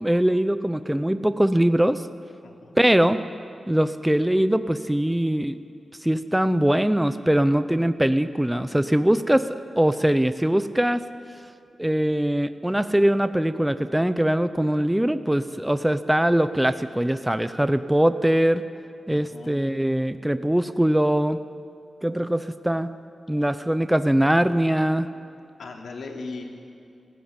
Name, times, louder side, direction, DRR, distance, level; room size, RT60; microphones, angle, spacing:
voice 1, 0.0-2.1 2.8-3.2 3.7-5.6 6.0-11.0 11.8-18.6 19.1-21.4 22.0-22.9 23.3-25.1, right 1 dB, 5° right, 11 dB, 0.6 m, -22 dB
voice 2, 2.4-2.8 19.1-19.6 25.6-26.5, left 3 dB, 70° left, 1 dB, 3.0 m, -38 dB
30.0 x 15.5 x 9.7 m, 2.4 s
wide cardioid pair, 175°, 0 cm